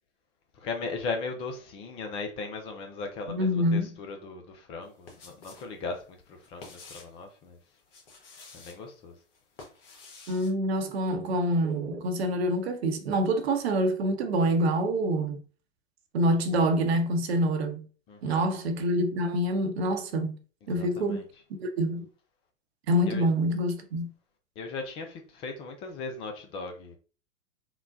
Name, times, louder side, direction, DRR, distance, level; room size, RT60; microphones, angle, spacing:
voice 1, 0.6-7.6 8.5-9.2 18.1-18.5 20.7-21.2 23.0-23.2 24.6-27.0, left 4 dB, 15° left, 0.3 m, -38 dB
voice 2, 3.3-3.9 10.3-15.4 16.1-17.9 18.2-20.4 20.7-21.2 21.6-22.1 22.9-24.1, right 1 dB, 60° right, 0.8 m, -26 dB
sound 1, 4.8-5.7 6.0-7.2 7.8-8.8 9.3-10.5, left 3 dB, 50° left, 1.2 m, -49 dB
3.8 x 2.1 x 2.4 m
figure-of-eight pair, 100°, 35 cm